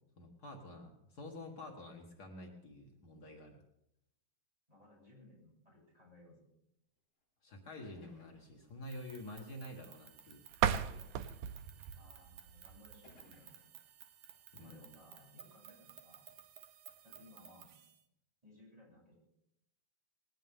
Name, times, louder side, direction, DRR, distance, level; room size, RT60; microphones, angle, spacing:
voice 1, 0.2-3.6 7.4-11.1 14.5-14.9, left 1 dB, 85° left, 1 dB, 0.8 m, -49 dB
voice 2, 4.7-6.5 11.9-13.6 14.6-16.2 17.0-17.7 18.4-19.1, left 1 dB, 10° right, -5 dB, 7.9 m, -61 dB
sound 1, 7.2-7.3 7.8-8.6 9.5-9.6 10.8-11.3 12.2-12.3 13.0-13.8, left 2 dB, 60° left, 8.3 m, -64 dB
sound 2, 8.8-18.0, right 10 dB, 70° right, 2.6 m, -58 dB
sound 3, 10.5-13.4, right 10 dB, 85° right, 1.8 m, -37 dB
20.0 x 18.0 x 3.6 m, 0.80 s
omnidirectional pair, 4.4 m